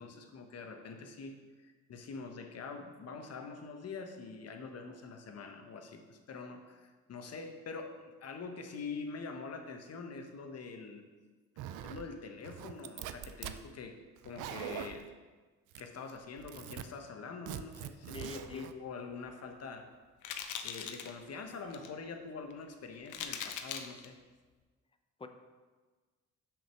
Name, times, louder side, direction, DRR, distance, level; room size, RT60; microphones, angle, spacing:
voice 1, 0.0-11.0 11.8-14.0 14.2-15.1 15.8-19.9 20.6-24.2, left 4 dB, 55° left, 5 dB, 1.1 m, -45 dB
Zipper (clothing), 11.6-12.1 12.4-13.6 14.2-15.0 15.7-16.1 16.4-16.8 17.5-18.7, right 10 dB, 85° right, 0.5 m, -43 dB
voice 2, 18.1-18.7 25.2-25.3, left 3 dB, 20° left, 7 dB, 0.7 m, -44 dB
sound 1, 19.3-19.5 20.2-21.1 21.5-21.9 22.5-22.6 23.1-24.1, left 8 dB, 80° left, 0.8 m, -40 dB
6.2 x 5.1 x 6.2 m, 1.4 s
cardioid pair, 90°, 30 cm